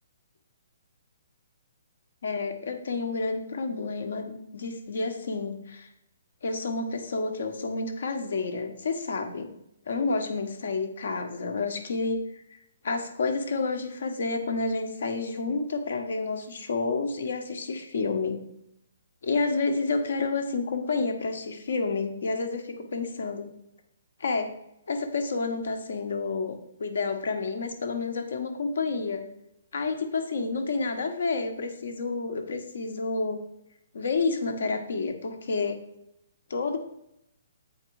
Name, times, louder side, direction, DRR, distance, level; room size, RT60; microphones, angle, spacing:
voice 1, 2.2-5.9 6.4-9.5 9.9-12.4 12.8-18.4 19.2-23.5 24.2-24.5 24.9-29.3 29.7-33.4 33.9-35.8 36.5-36.8, left 3 dB, 70° left, 6 dB, 1.2 m, -29 dB
8.0 x 4.6 x 4.7 m, 0.79 s
hypercardioid pair, 170°, 0 cm